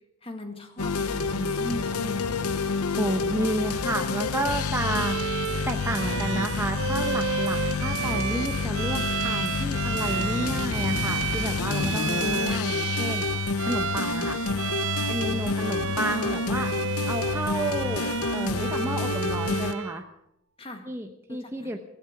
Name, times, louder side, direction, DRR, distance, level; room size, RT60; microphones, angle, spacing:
voice 1, 0.2-2.4 15.2-16.1 20.6-20.9 21.3-21.7, left 1 dB, 25° left, 5 dB, 1.9 m, -39 dB
sound 1, 0.8-19.7, left 4 dB, 90° left, 0.8 m, -28 dB
voice 2, 3.0-5.4 5.7-13.3 13.7-14.4 15.1-20.0 20.9-21.8, right 1 dB, 10° right, 4 dB, 0.9 m, -31 dB
Bowed string instrument, 4.8-20.0, right 8 dB, 60° right, 0.5 m, -32 dB
15.5 x 14.5 x 6.0 m, 0.78 s
head